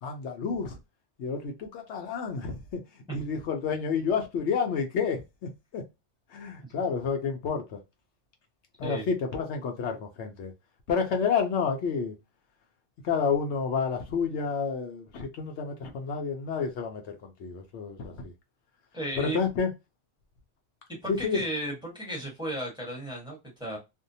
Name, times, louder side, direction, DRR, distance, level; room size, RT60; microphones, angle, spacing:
voice 1, 0.0-0.8 1.2-5.8 6.3-7.8 8.8-10.5 10.9-12.2 13.0-18.3 19.2-19.7 21.1-21.4, left 5 dB, 70° left, 0.9 m, -30 dB
voice 2, 18.9-19.4 21.0-23.8, right 1 dB, 5° right, 1.0 m, -34 dB
2.6 x 2.1 x 2.6 m
omnidirectional pair, 1.2 m